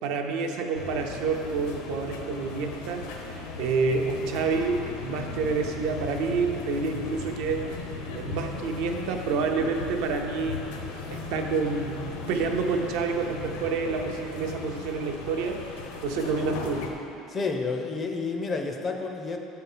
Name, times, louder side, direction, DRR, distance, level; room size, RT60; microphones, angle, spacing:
voice 1, 0.0-7.7 8.1-10.6 11.1-15.6 16.0-16.9, right 4 dB, 60° right, 4 dB, 0.6 m, -28 dB
sound 1, 0.7-16.9, left 4 dB, 85° left, 0.8 m, -37 dB
voice 2, 17.3-19.4, left 4 dB, 20° left, 4 dB, 0.4 m, -30 dB
7.7 x 4.3 x 5.5 m, 2.8 s
cardioid pair, 180°, 0 cm